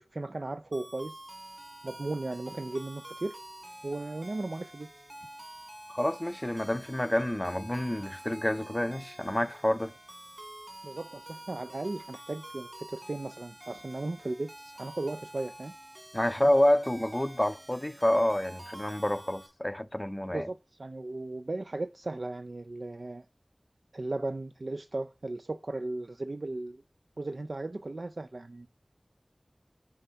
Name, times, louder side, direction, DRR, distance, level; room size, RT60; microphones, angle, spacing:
voice 1, 0.0-1.3 1.8-3.4 3.8-4.9 10.8-15.7 20.3-23.2 23.9-26.8 27.2-28.7, right 2 dB, 75° right, 0.3 m, -36 dB
sound 1, 0.7-19.5, right 1 dB, 40° right, 2.1 m, -48 dB
voice 2, 5.9-9.9 16.1-20.5, left 1 dB, 20° left, 0.5 m, -28 dB
7.7 x 3.4 x 5.6 m
wide cardioid pair, 45°, 0 cm